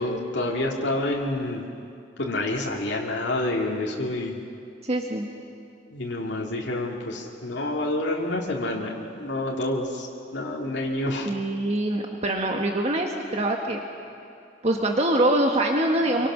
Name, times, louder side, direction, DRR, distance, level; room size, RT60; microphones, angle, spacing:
voice 1, 0.0-1.6 2.2-4.4 5.9-10.1 10.3-11.3, left 1 dB, 75° left, -2 dB, 2.4 m, -28 dB
voice 2, 4.8-5.3 11.2-13.8 14.6-16.3, right 1 dB, 35° right, 1 dB, 1.5 m, -24 dB
27.5 x 24.0 x 6.3 m, 2.5 s
head